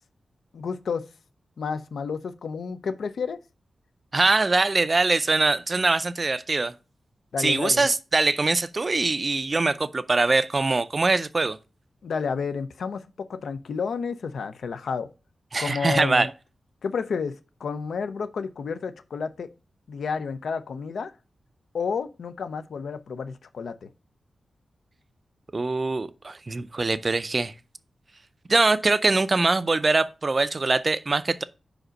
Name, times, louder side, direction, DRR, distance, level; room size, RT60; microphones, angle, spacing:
voice 1, 0.5-1.0 1.6-3.4 7.3-7.9 12.0-15.1 15.6-16.3 16.8-17.3 17.6-19.5 19.9-21.1 21.7-23.9, left 5 dB, 75° left, 0.6 m, -30 dB
voice 2, 4.1-6.7 7.4-11.6 15.5-16.3 25.5-27.5 28.5-31.4, right 3 dB, 30° right, 0.4 m, -23 dB
5.1 x 5.0 x 6.3 m
wide cardioid pair, 165°, 0 cm